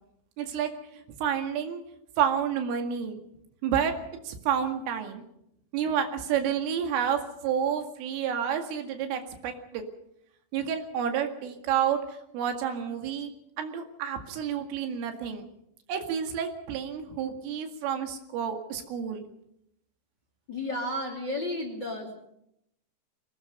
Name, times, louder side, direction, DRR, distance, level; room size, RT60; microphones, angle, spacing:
voice 1, 0.4-0.7 1.2-1.8 2.2-3.2 3.6-4.0 4.2-5.2 5.7-9.8 10.5-13.3 13.6-15.5 15.9-19.3, right 8 dB, 85° right, 5 dB, 4.7 m, -29 dB
voice 2, 20.5-22.2, left 1 dB, 30° left, 3 dB, 2.6 m, -32 dB
23.5 x 19.0 x 6.7 m, 0.79 s
omnidirectional pair, 5.6 m